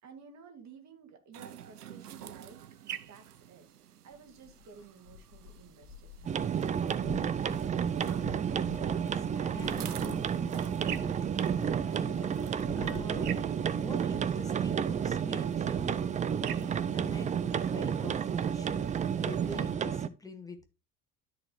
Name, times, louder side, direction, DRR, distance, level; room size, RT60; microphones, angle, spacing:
voice 1, 0.0-6.7, right 5 dB, 35° right, 3 dB, 2.4 m, -54 dB
sound 1, 1.3-19.8, right 10 dB, 85° right, 0.6 m, -49 dB
sound 2, 4.1-14.0 14.3-15.3, left 7 dB, 80° left, 1.5 m, -51 dB
sound 3, 6.2-20.1, right 8 dB, 15° right, 0.4 m, -31 dB
voice 2, 8.1-11.2 11.8-13.3 13.7-16.1 16.4-17.3 17.7-20.6, left 2 dB, 10° left, 5 dB, 1.9 m, -46 dB
13.0 x 4.5 x 3.1 m, 0.29 s
figure-of-eight pair, 65°, 45 cm